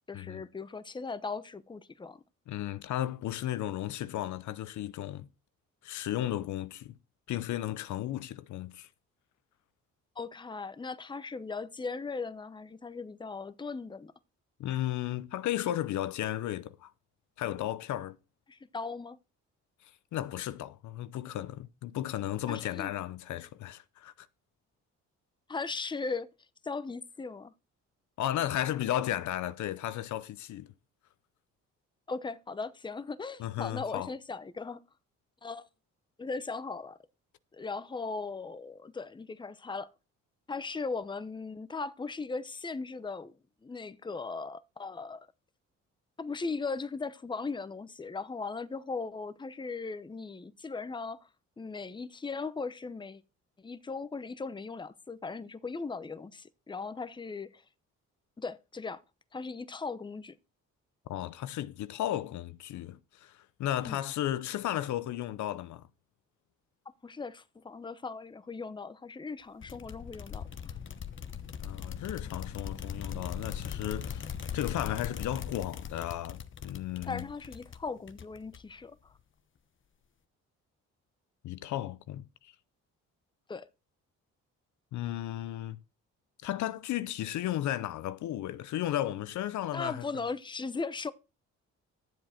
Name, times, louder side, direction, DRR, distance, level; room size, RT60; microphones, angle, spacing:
voice 1, 0.1-2.2 10.2-14.1 18.5-19.2 22.5-22.9 25.5-26.3 26.6-27.5 32.1-34.8 35.4-35.7 36.2-37.0 37.5-39.9 40.5-43.3 43.6-45.3 46.2-51.3 51.6-53.2 53.6-57.6 58.4-59.0 59.3-60.4 63.9-64.0 67.0-70.5 77.0-79.1 83.5-83.7 89.7-91.1, left 4 dB, 15° left, 0.7 m, -38 dB
voice 2, 2.5-5.3 5.8-7.0 7.3-8.9 14.6-16.9 17.4-18.2 20.1-24.3 28.2-30.7 33.4-34.1 61.1-65.8 71.6-77.2 81.4-82.5 84.9-85.8 86.4-90.0, left 13 dB, 70° left, 0.7 m, -34 dB
sound 1, 69.6-78.8, left 7 dB, 40° left, 1.0 m, -40 dB
11.0 x 7.6 x 4.3 m
cardioid pair, 90°, 30 cm